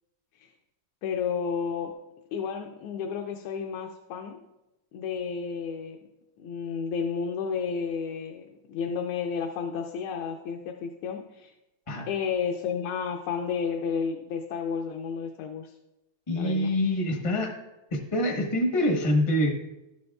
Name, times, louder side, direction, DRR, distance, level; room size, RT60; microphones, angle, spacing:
voice 1, 1.0-1.9 2.3-4.4 4.9-6.0 6.4-11.5 12.1-15.8 16.3-16.7, left 6 dB, 85° left, 2 dB, 1.5 m, -32 dB
voice 2, 16.3-17.5 17.9-19.5, left 1 dB, 35° left, 2 dB, 0.5 m, -25 dB
11.5 x 7.6 x 2.3 m, 0.97 s
omnidirectional pair, 2.3 m